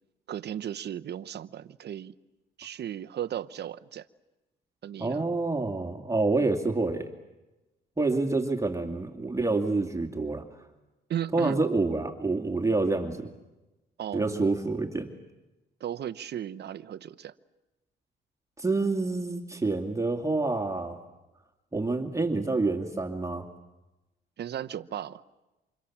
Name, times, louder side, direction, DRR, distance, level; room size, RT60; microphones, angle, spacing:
voice 1, 0.3-2.1 2.6-4.1 4.8-5.3 11.1-11.6 14.0-14.5 15.8-17.3 24.4-25.2, right 10 dB, 55° right, 12 dB, 0.9 m, -36 dB
voice 2, 5.0-7.1 8.0-10.4 11.3-13.3 14.1-15.1 18.6-21.0 21.7-23.5, right 3 dB, 15° right, 3 dB, 2.3 m, -27 dB
28.5 x 26.5 x 7.3 m, 1.0 s
cardioid pair, 90°, 20 cm